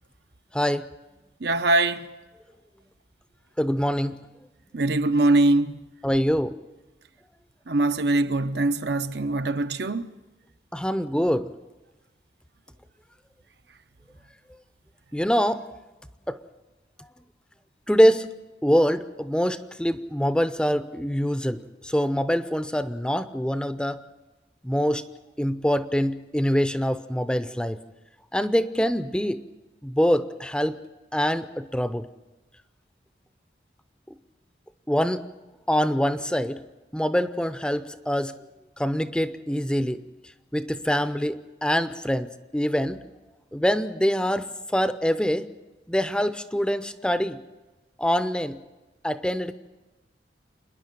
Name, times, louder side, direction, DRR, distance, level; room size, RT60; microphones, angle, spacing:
voice 1, 0.5-0.8 3.6-4.2 6.0-6.5 10.7-11.5 15.1-15.6 16.3-16.4 17.9-18.3 18.6-24.0 24.6-25.0 25.4-27.8 28.3-29.4 29.8-30.8 31.1-32.1 34.9-35.2 35.7-36.6 36.9-38.3 38.8-40.0 40.5-43.0 43.5-44.5 44.7-45.5 45.9-47.4 48.0-48.6 49.0-49.5, equal, 5° left, 0.6 m, -24 dB
voice 2, 1.4-2.1 4.7-5.8 7.7-10.1, right 2 dB, 70° right, 0.8 m, -22 dB
27.5 x 10.5 x 9.1 m
head